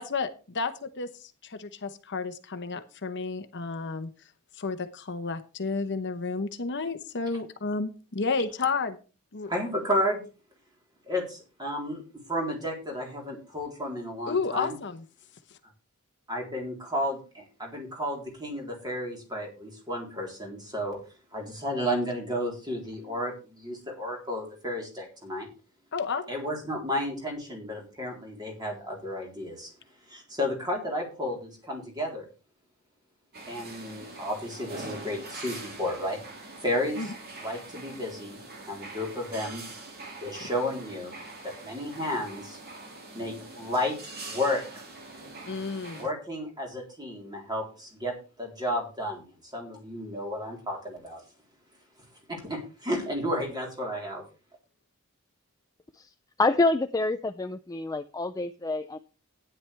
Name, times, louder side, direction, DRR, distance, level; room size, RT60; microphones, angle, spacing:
voice 1, 0.0-4.1 4.6-9.0 9.3-9.5 14.3-15.0 25.9-26.2 37.0-37.1 45.5-46.1, left 4 dB, 55° left, 8 dB, 1.0 m, -31 dB
voice 2, 9.5-10.2 11.1-12.0 12.3-14.8 16.3-21.0 21.3-25.5 26.3-29.7 30.1-32.2 33.5-36.2 36.6-37.1 37.4-38.4 38.7-39.6 40.2-41.1 41.4-42.6 43.1-44.8 46.0-51.2 52.3-54.2, equal, 20° right, 0 dB, 3.7 m, -32 dB
sound 1, 33.3-46.0, right 3 dB, 45° right, 2.4 m, -43 dB
voice 3, 56.4-59.0, left 2 dB, 15° left, 8 dB, 0.4 m, -27 dB
13.0 x 9.8 x 3.4 m, 0.34 s
head